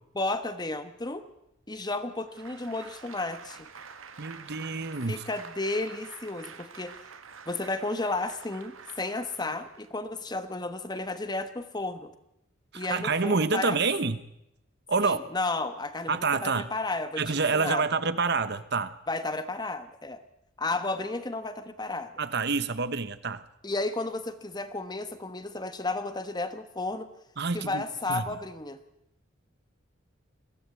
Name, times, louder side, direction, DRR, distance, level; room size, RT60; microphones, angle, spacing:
voice 1, 0.1-1.2 1.7-3.7 5.1-6.9 7.5-12.1 12.7-13.8 15.0-17.9 19.1-20.2 20.6-22.1 23.6-27.1 27.5-28.8, left 2 dB, 20° left, 10 dB, 1.2 m, -33 dB
Applause, 2.2-10.0, right 6 dB, 80° right, 1.7 m, -48 dB
voice 2, 4.2-5.2 12.7-14.2 14.9-15.2 16.1-16.7 17.2-19.0 22.2-23.4 27.4-27.8 28.1-28.2, right 4 dB, 55° right, 13 dB, 1.0 m, -27 dB
sound 1, 13.1-13.4 15.9-16.1 17.8-18.1 19.8-20.3, left 2 dB, 55° left, 3.5 m, -61 dB
22.0 x 16.0 x 8.2 m, 0.81 s
head